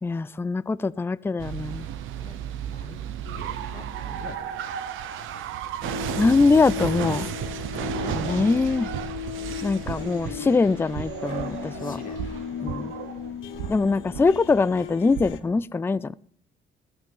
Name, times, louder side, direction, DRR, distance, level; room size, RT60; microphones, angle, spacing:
voice 1, 0.0-1.9 6.2-7.3 8.1-8.9 9.6-12.0 12.6-12.9 13.7-16.1, left 4 dB, 10° left, 0.3 m, -23 dB
sound 1, 1.4-15.6, right 10 dB, 85° right, 0.8 m, -34 dB
voice 2, 2.0-2.4 2.7-3.0 3.4-4.6 7.7-8.6 9.2-10.7 11.8-12.2 13.5-14.3, left 4 dB, 45° left, 2.2 m, -45 dB
sound 2, 3.2-5.2 5.8-15.4, left 9 dB, 80° left, 1.0 m, -37 dB
15.5 x 6.1 x 5.5 m
cardioid pair, 90°, 20 cm